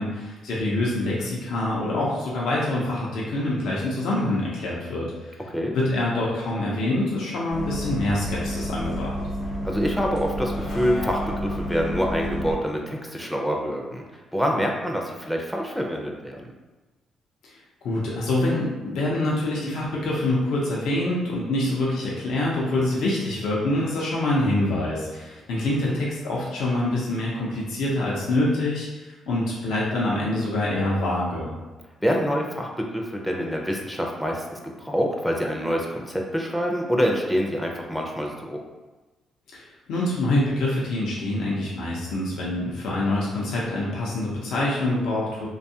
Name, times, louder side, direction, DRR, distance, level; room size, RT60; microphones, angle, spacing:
voice 1, 0.0-5.4 5.7-9.1 17.4-17.6 17.8-31.5 39.5-45.5, left 1 dB, 80° left, -5 dB, 0.5 m, -25 dB
Bus, 7.5-12.5, equal, 55° left, 0.9 m, -30 dB
voice 2, 9.6-16.5 22.9-23.0 25.8-26.0 32.0-38.6, equal, ahead, 0 dB, 0.4 m, -26 dB
2.6 x 2.3 x 2.7 m, 1.2 s
cardioid pair, 90°, 0 cm